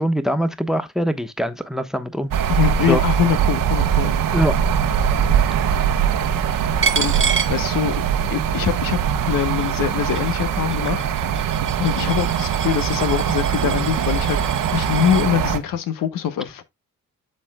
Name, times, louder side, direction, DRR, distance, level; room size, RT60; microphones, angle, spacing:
voice 1, 0.0-2.3 2.9-3.0 4.3-4.6, equal, ahead, 1.1 m, -22 dB
sound 1, 2.3-15.6, right 8 dB, 80° right, 1.2 m, -21 dB
voice 2, 2.5-4.1 6.9-9.0 9.3-11.4 11.7-16.6, left 10 dB, 80° left, 1.1 m, -23 dB
Coin (dropping), 6.8-8.3 8.7-15.3, right 6 dB, 40° right, 1.2 m, -29 dB
13.0 x 4.4 x 2.3 m
cardioid pair, 70°, 33 cm